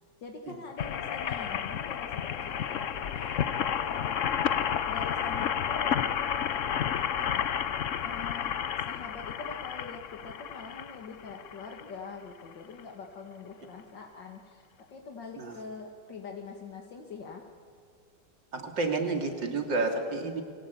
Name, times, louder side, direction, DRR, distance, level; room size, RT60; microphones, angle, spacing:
voice 1, 0.2-3.4 3.9-4.3 4.9-7.5 8.0-8.6 8.9-14.6 14.9-17.4, left 4 dB, 75° left, 2 dB, 2.6 m, -44 dB
sound 1, 0.8-11.9 12.5-12.6 12.8-12.9, left 9 dB, 55° left, 1.0 m, -31 dB
voice 2, 18.5-20.4, right 3 dB, 80° right, 4 dB, 3.5 m, -30 dB
29.0 x 24.0 x 8.4 m, 2.2 s
omnidirectional pair, 2.0 m